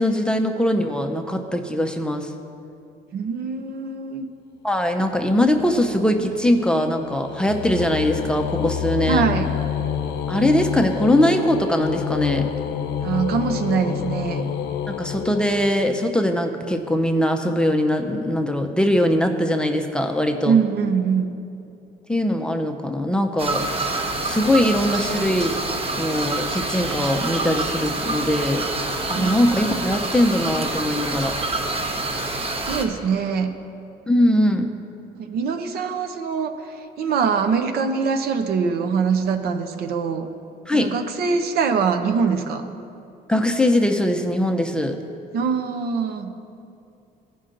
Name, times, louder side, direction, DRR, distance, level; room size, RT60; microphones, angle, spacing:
voice 1, 0.0-2.3 4.6-9.3 10.3-12.5 14.9-20.6 22.1-23.9 24.2-25.6 26.0-28.7 29.1-31.4 34.1-34.7 40.7-40.9 43.3-45.0, left 1 dB, 5° left, 4 dB, 0.6 m, -21 dB
voice 2, 3.1-4.3 9.0-9.5 13.0-14.5 20.4-21.3 29.1-29.4 32.7-33.5 35.2-40.3 40.7-42.7 45.3-46.3, right 6 dB, 65° right, 7 dB, 0.7 m, -23 dB
sound 1, 5.2-16.1, left 9 dB, 75° left, 0.6 m, -28 dB
sound 2, 23.4-32.9, right 2 dB, 35° right, 1.0 m, -27 dB
15.0 x 5.4 x 3.8 m, 2.7 s
cardioid pair, 110°, 17 cm